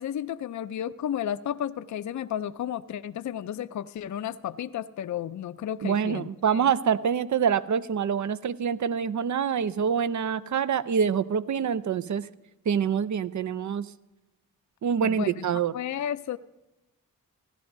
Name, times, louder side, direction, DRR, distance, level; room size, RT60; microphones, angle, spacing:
voice 1, 0.0-6.7 15.0-15.5 15.7-16.4, left 10 dB, 50° left, 12 dB, 0.5 m, -33 dB
voice 2, 5.8-12.3 12.7-13.9 14.8-15.7, right 7 dB, 50° right, 16 dB, 0.6 m, -26 dB
16.0 x 11.0 x 2.6 m, 1.0 s
supercardioid pair, 45°, 37 cm